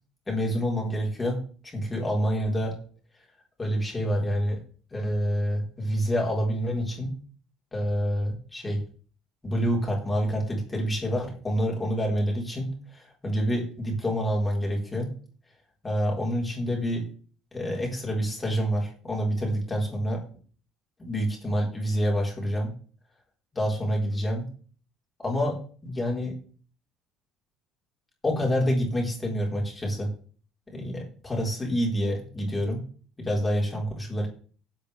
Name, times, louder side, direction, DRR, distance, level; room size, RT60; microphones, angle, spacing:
voice 1, 0.3-2.7 3.6-4.6 4.9-7.1 7.7-8.8 9.4-15.1 15.8-17.1 17.5-20.2 21.0-22.7 23.5-24.5 25.2-26.4 28.2-30.1 30.7-32.8 33.2-34.3, equal, 10° left, -1 dB, 4.2 m, -27 dB
17.5 x 8.2 x 3.5 m, 0.42 s
cardioid pair, 155°, 0 cm